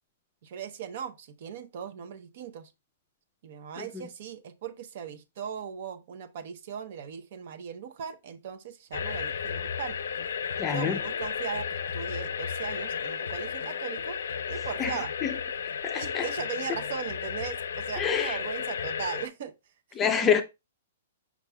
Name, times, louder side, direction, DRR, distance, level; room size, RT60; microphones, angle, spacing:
voice 1, 0.4-2.7 3.4-10.0 10.7-14.2 14.5-15.1 16.0-19.5 20.0-20.4, right 7 dB, 45° right, 0.7 m, -38 dB
sound 1, 8.9-19.3, left 7 dB, 85° left, 0.6 m, -33 dB
voice 2, 10.6-11.0 14.8-15.3 15.8-16.3 18.0-18.4 20.0-20.4, left 8 dB, 15° left, 0.5 m, -27 dB
7.1 x 6.0 x 2.3 m
hypercardioid pair, 175°, 0 cm